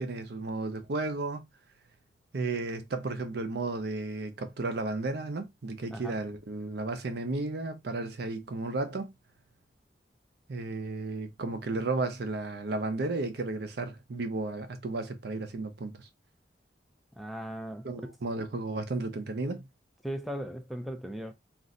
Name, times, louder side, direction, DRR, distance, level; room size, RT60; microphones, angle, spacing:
voice 1, 0.0-1.5 2.3-9.1 10.5-16.1 17.8-19.7, right 3 dB, 65° right, 0.6 m, -33 dB
voice 2, 17.2-17.9 20.0-21.3, equal, ahead, 0.3 m, -37 dB
2.5 x 2.1 x 3.6 m
head